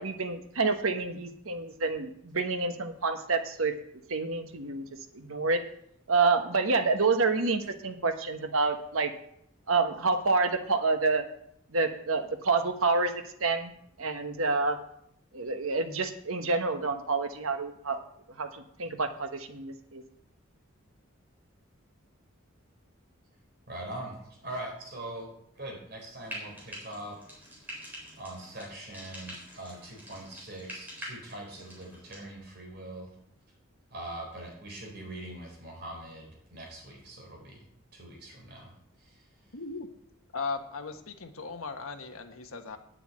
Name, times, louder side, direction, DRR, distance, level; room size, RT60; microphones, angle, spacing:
voice 1, 0.0-3.7 4.1-4.9 5.1-5.7 6.1-9.1 9.7-11.2 11.7-13.1 13.4-13.7 14.0-14.8 15.3-18.0 18.4-20.0, right 3 dB, 85° right, 7 dB, 1.2 m, -28 dB
voice 2, 23.7-25.3 25.6-27.2 28.2-33.1 33.9-37.6 37.9-38.7 39.0-39.2, right 1 dB, 50° right, -1 dB, 4.3 m, -42 dB
Frying (food), 26.2-32.2, equal, 10° right, 3.8 m, -45 dB
voice 3, 39.5-39.9 40.3-42.8, left 4 dB, 90° left, 5 dB, 1.4 m, -37 dB
9.6 x 6.9 x 8.7 m, 0.72 s
head